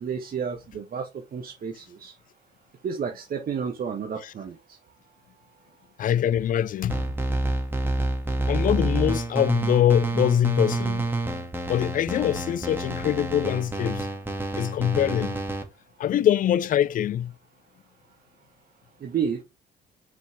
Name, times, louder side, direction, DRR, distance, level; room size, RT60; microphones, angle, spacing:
voice 1, 0.0-2.1 2.8-4.5 19.0-19.4, right 7 dB, 45° right, 1.2 m, -31 dB
voice 2, 6.0-7.0 8.5-11.1 11.7-14.1 14.6-15.4 16.0-17.3, left 10 dB, 40° left, 0.4 m, -23 dB
sound 1, 6.9-15.6, right 2 dB, 10° right, 2.2 m, -28 dB
6.2 x 5.3 x 3.5 m
hypercardioid pair, 50°, 21 cm